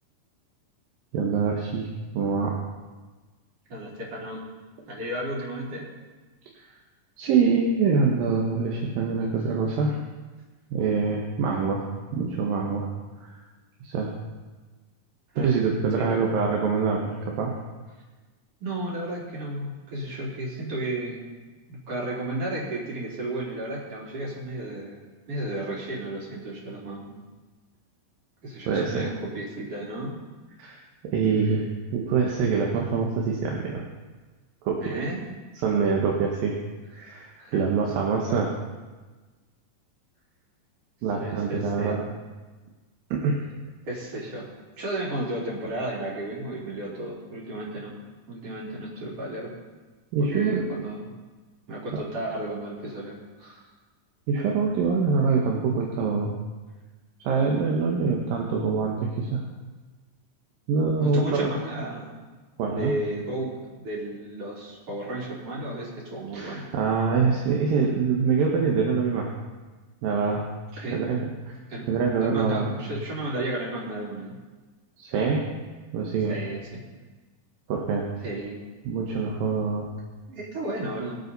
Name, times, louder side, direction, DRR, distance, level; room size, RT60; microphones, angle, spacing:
voice 1, 1.1-1.9 2.1-2.6 7.2-10.0 10.7-12.9 13.3-13.4 13.8-14.1 15.4-17.5 28.7-29.1 30.6-31.7 31.9-33.9 34.7-35.0 35.6-36.6 36.9-38.5 41.0-42.0 43.1-43.4 50.1-50.6 51.9-52.0 54.3-56.3 57.2-59.4 60.7-61.5 62.6-62.9 66.3-69.3 70.0-70.4 70.7-71.6 71.9-72.7 75.0-75.5 75.9-76.4 77.7-78.1 78.9-79.9, right 5 dB, 90° right, -1 dB, 3.0 m, -25 dB
voice 2, 3.7-4.4 4.9-5.9 15.3-15.5 16.0-16.2 18.6-21.3 21.7-25.0 25.3-27.1 28.4-30.2 34.7-35.3 37.4-37.6 38.3-38.4 41.2-42.0 43.9-44.5 44.8-48.0 48.3-49.5 50.2-51.1 51.7-53.6 61.0-62.2 62.8-66.7 70.8-71.0 71.7-71.9 72.2-74.3 76.3-76.8 78.2-78.6 80.3-81.2, right 1 dB, 45° right, -5 dB, 3.8 m, -33 dB
21.0 x 8.4 x 4.0 m, 1.3 s
omnidirectional pair, 4.0 m